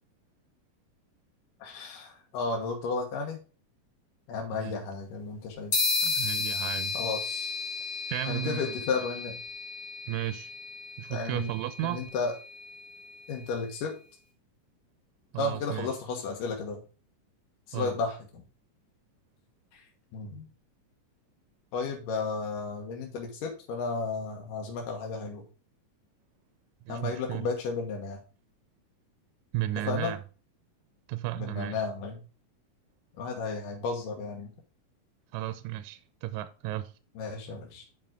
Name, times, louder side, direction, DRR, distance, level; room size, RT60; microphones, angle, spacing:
voice 1, 1.6-3.4 4.3-5.7 6.9-7.5 8.3-9.4 11.1-11.5 11.8-12.3 13.3-13.9 15.4-16.8 17.7-18.4 19.7-19.8 20.1-20.4 21.7-25.4 26.9-28.2 29.9-30.1 31.4-32.2 33.2-34.5 37.2-37.9, left 4 dB, 85° left, 2.9 m, -33 dB
voice 2, 4.5-4.9 6.0-7.0 8.1-8.8 10.1-10.5 11.0-12.0 15.3-15.9 17.7-18.0 26.9-27.5 29.5-30.2 31.1-31.8 35.3-36.9, right 14 dB, 80° right, 1.9 m, -34 dB
sound 1, 5.7-13.4, left 3 dB, 45° left, 2.6 m, -33 dB
9.1 x 5.3 x 3.7 m
omnidirectional pair, 3.7 m